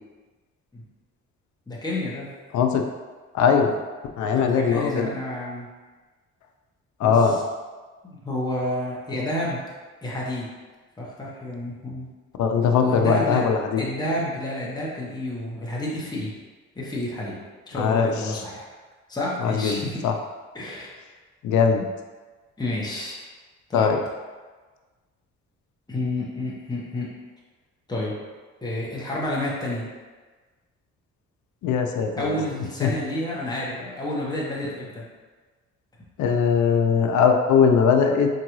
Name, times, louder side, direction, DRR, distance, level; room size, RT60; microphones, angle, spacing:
voice 1, 1.7-2.3 4.4-5.7 7.0-7.4 8.0-9.6 10.0-10.5 11.0-12.1 12.8-13.5 13.8-16.3 16.7-17.3 17.7-18.7 19.1-20.0 20.5-20.9 22.6-23.2 23.7-23.9 25.9-27.1 27.9-28.1 28.6-29.9 32.2-35.0, left 1 dB, 15° left, -5 dB, 1.0 m, -29 dB
voice 2, 3.3-3.7 4.2-5.1 7.0-7.3 12.4-13.8 17.7-18.1 19.4-20.1 21.4-21.8 23.7-24.0 31.6-32.4 32.8-32.9 36.2-38.3, left 6 dB, 70° left, 4 dB, 0.5 m, -20 dB
4.6 x 2.5 x 3.0 m, 1.3 s
cardioid pair, 90°, 30 cm